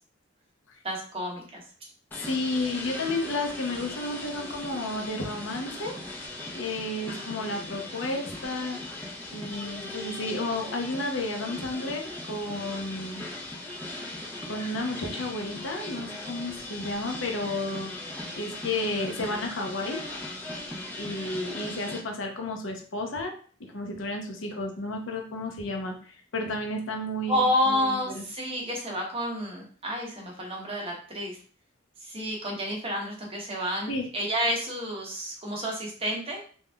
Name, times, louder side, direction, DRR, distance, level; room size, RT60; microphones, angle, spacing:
voice 1, 0.8-1.6 27.3-31.4 32.0-36.4, equal, 30° right, -1 dB, 1.1 m, -30 dB
voice 2, 2.1-6.0 6.5-8.8 9.3-13.2 14.5-20.1 21.0-23.3 23.6-28.2 33.9-34.1, left 2 dB, 75° left, 3 dB, 0.8 m, -32 dB
sound 1, 2.1-22.0, left 1 dB, 10° left, 0.9 m, -39 dB
3.6 x 2.6 x 3.4 m, 0.42 s
head